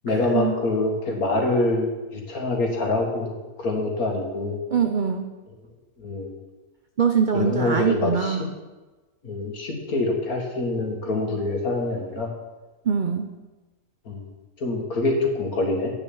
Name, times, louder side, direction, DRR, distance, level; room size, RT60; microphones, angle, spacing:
voice 1, 0.0-1.9 2.3-3.3 3.6-4.6 6.0-6.3 7.3-8.4 9.2-12.3 14.1-14.3 14.6-15.9, left 2 dB, 65° left, 1 dB, 2.2 m, -25 dB
voice 2, 4.7-5.3 7.0-8.5 12.9-13.3, right 7 dB, 55° right, 5 dB, 0.5 m, -23 dB
9.0 x 6.9 x 7.9 m, 1.2 s
omnidirectional pair, 1.6 m